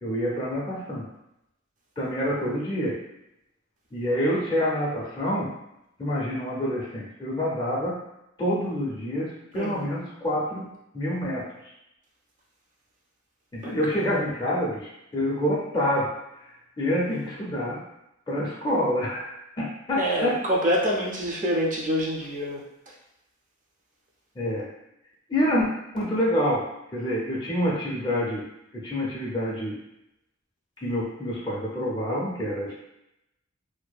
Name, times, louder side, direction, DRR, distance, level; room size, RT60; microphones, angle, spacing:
voice 1, 0.0-1.0 2.0-3.0 3.9-5.5 6.0-8.0 8.4-10.7 10.9-11.5 13.5-16.1 16.8-17.8 18.3-19.3 19.6-20.4 24.4-24.7 25.3-25.7 25.9-26.7 26.9-28.4 28.7-29.8 30.8-32.7, equal, 20° left, -6 dB, 0.4 m, -27 dB
voice 2, 20.0-22.6, equal, 40° right, -2 dB, 0.4 m, -26 dB
2.6 x 2.1 x 2.3 m, 0.86 s
head